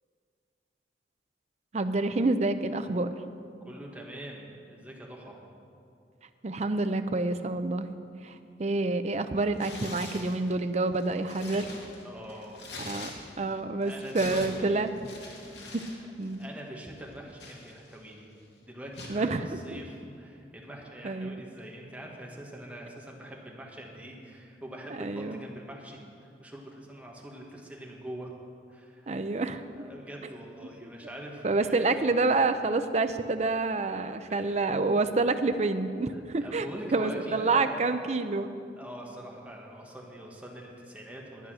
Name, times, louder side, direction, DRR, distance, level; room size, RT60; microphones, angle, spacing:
voice 1, 1.7-3.1 6.4-7.9 8.2-11.7 12.9-13.1 13.4-14.9 15.7-15.8 16.2-16.4 19.1-19.4 19.7-19.8 21.0-21.3 25.0-25.4 29.1-29.6 30.8-30.9 31.4-36.7 36.9-38.5, right 3 dB, 40° right, 10 dB, 0.5 m, -28 dB
voice 2, 3.6-5.4 12.0-12.6 13.8-15.0 16.4-18.3 18.6-26.0 26.4-28.3 28.7-32.1 34.3-34.7 36.1-38.2 38.8-41.5, right 1 dB, 10° right, -2 dB, 1.5 m, -44 dB
Tearing, 9.5-10.4 10.9-13.5 13.8-16.0 16.2-16.5 17.0-18.1 18.9-19.2, left 2 dB, 75° left, 2.1 m, -44 dB
11.5 x 9.5 x 6.2 m, 2.5 s
head